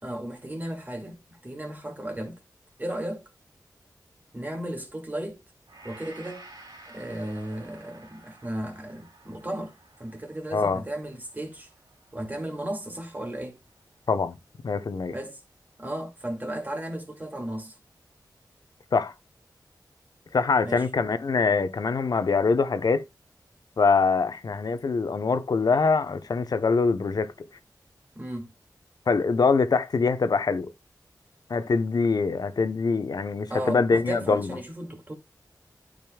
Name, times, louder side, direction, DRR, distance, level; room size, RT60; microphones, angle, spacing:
voice 1, 0.0-2.4 2.8-3.2 4.3-5.4 5.8-6.5 6.9-11.7 12.1-13.6 15.1-15.4 15.8-17.8 20.6-20.8 28.1-28.5 33.5-35.1, right 1 dB, 25° right, 2.2 m, -35 dB
Gong, 5.7-14.0 14.4-14.6, right 2 dB, 90° right, 2.8 m, -52 dB
voice 2, 10.5-10.8 14.1-14.4 14.6-15.1 18.9-19.1 20.3-23.0 23.8-27.3 29.1-30.7 31.5-34.6, left 4 dB, 65° left, 0.8 m, -24 dB
12.5 x 5.2 x 2.3 m
wide cardioid pair, 105°, 7 cm